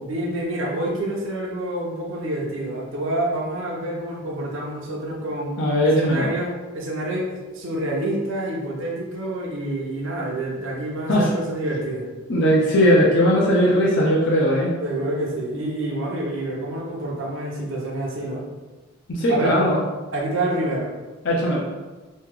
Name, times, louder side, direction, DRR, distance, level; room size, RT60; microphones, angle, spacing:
voice 1, 0.0-5.5 5.8-12.1 14.8-18.4 19.3-19.5 20.1-20.9, right 1 dB, 65° right, -3 dB, 0.8 m, -27 dB
voice 2, 5.6-6.3 11.1-11.3 12.3-14.7 19.1-19.8 21.2-21.6, equal, 60° left, -4 dB, 0.6 m, -18 dB
3.1 x 2.8 x 3.6 m, 1.2 s
head